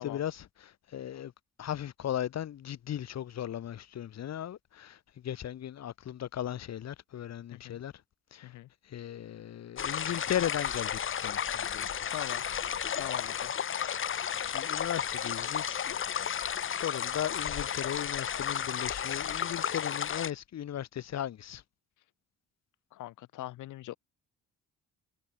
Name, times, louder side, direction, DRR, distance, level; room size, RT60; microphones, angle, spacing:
voice 1, 0.0-1.3 1.6-7.9 8.3-8.5 8.9-12.1 14.4-16.0 16.7-21.6, left 10 dB, 60° left, 1.6 m, -37 dB
sound 1, 9.8-20.3, left 8 dB, 45° left, 1.0 m, -33 dB
voice 2, 12.1-12.5 13.0-13.5 22.9-23.9, left 15 dB, 85° left, 2.0 m, -41 dB
cardioid pair, 90°, 30 cm